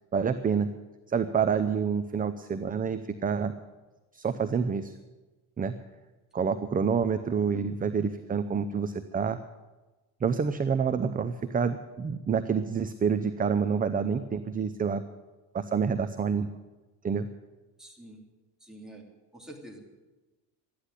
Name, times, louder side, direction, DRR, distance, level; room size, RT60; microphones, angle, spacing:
voice 1, 0.1-0.7 1.1-3.5 4.1-4.9 5.6-5.7 6.3-9.4 10.2-15.0 15.5-16.5 17.0-17.3, right 6 dB, 20° right, 11 dB, 0.6 m, -28 dB
voice 2, 17.8-18.2 18.6-19.0 19.3-19.8, right 1 dB, ahead, -1 dB, 2.9 m, -46 dB
13.0 x 10.5 x 9.9 m, 1.2 s
cardioid pair, 125°, 43 cm